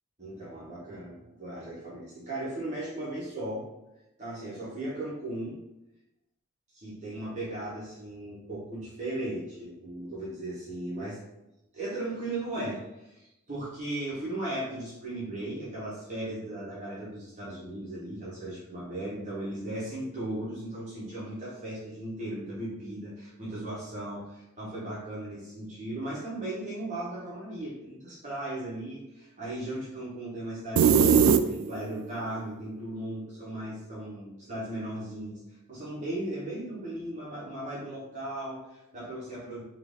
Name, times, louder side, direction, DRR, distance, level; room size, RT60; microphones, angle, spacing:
voice 1, 0.2-3.7 4.2-5.6 6.7-11.2 11.7-35.4 35.7-39.6, right 1 dB, 35° right, -8 dB, 1.2 m, -37 dB
sound 1, 30.8-32.0, right 6 dB, 80° right, 0.3 m, -20 dB
4.4 x 2.6 x 3.6 m, 0.92 s
head